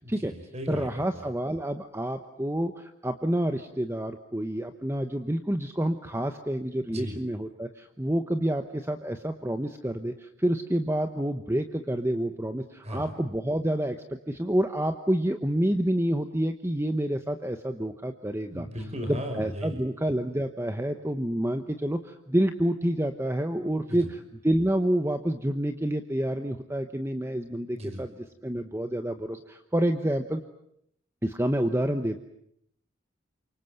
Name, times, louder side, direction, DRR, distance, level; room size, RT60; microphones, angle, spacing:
voice 1, 0.0-1.3 6.9-7.2 12.8-13.2 18.5-19.8 23.9-24.1 27.8-28.1, equal, 30° right, 6 dB, 5.7 m, -36 dB
voice 2, 0.7-14.0 14.3-18.7 19.1-28.1 28.4-30.4 31.2-32.2, right 1 dB, 10° right, 8 dB, 1.0 m, -28 dB
28.5 x 25.0 x 7.9 m, 0.75 s
head